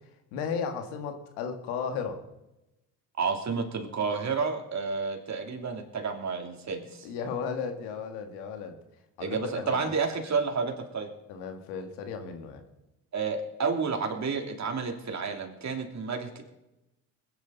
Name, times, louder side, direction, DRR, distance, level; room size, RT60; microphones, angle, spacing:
voice 1, 0.3-2.2 7.0-8.8 9.2-10.0 11.3-12.6, left 6 dB, 85° left, 6 dB, 1.9 m, -35 dB
voice 2, 3.2-7.1 9.2-11.1 13.1-16.4, right 5 dB, 40° right, 3 dB, 3.0 m, -30 dB
21.0 x 10.0 x 4.1 m, 0.95 s
hypercardioid pair, 65°, 41 cm